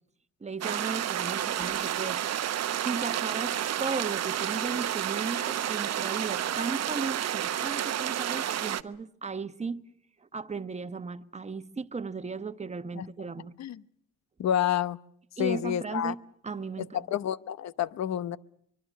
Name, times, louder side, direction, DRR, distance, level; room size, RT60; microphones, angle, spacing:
voice 1, 0.4-9.8 10.2-13.5 15.4-17.1, right 4 dB, 20° right, 1.2 m, -36 dB
sound 1, 0.6-8.8, right 10 dB, 55° right, 0.9 m, -30 dB
voice 2, 14.4-15.0 15.4-16.1 16.8-18.4, left 10 dB, 60° left, 0.9 m, -29 dB
24.5 x 23.5 x 6.4 m
cardioid pair, 90°, 30 cm